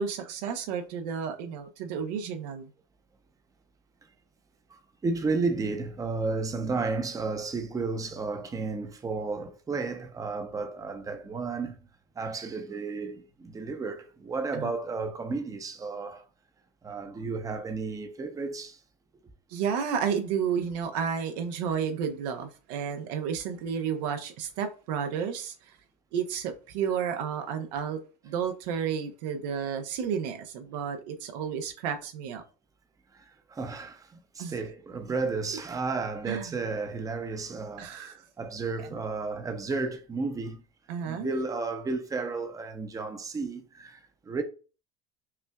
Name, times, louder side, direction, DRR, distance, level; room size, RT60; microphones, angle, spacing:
voice 1, 0.0-2.7 14.5-14.7 19.5-25.5 26.1-32.4 34.4-34.5 36.3-36.6 37.8-38.2 40.9-41.3, right 7 dB, 80° right, 0.8 m, -31 dB
voice 2, 4.7-11.8 12.2-16.2 16.8-18.8 33.1-38.1 38.4-40.6 41.0-44.4, right 4 dB, 15° right, 0.6 m, -33 dB
5.6 x 2.3 x 2.3 m
supercardioid pair, 105°, 21 cm